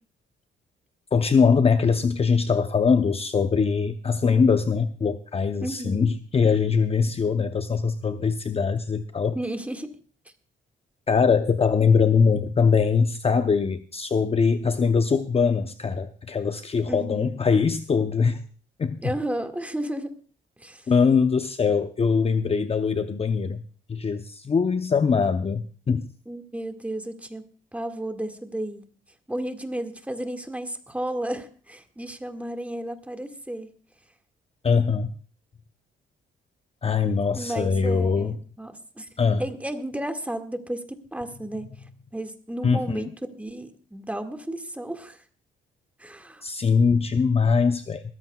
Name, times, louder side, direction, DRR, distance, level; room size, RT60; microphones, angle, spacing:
voice 1, 1.1-9.4 11.1-18.4 18.8-19.0 20.9-23.6 23.9-26.1 34.6-35.1 36.8-38.3 39.2-39.4 42.6-43.0 46.4-48.0, left 5 dB, 30° left, 8 dB, 0.7 m, -22 dB
voice 2, 5.6-6.0 9.4-9.9 16.9-17.3 19.0-20.1 20.6-20.9 26.3-27.4 27.7-28.9 29.3-33.7 37.3-39.1 39.4-41.7 42.1-45.2 46.0-46.4, right 1 dB, 5° right, 6 dB, 1.9 m, -33 dB
21.5 x 14.5 x 2.3 m, 0.40 s
cardioid pair, 90°, 20 cm